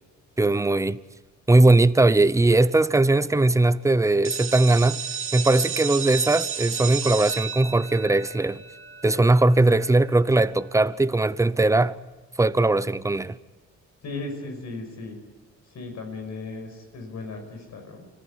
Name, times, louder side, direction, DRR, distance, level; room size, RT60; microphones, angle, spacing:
voice 1, 0.4-1.0 1.5-5.0 5.3-8.6 9.0-12.0 12.4-13.4, right 2 dB, 10° right, 0.7 m, -19 dB
sound 1, 4.2-9.9, right 6 dB, 45° right, 2.5 m, -32 dB
voice 2, 14.0-15.2 15.6-18.1, left 3 dB, 65° left, 5.8 m, -36 dB
25.5 x 15.0 x 9.7 m
cardioid pair, 90°, 30 cm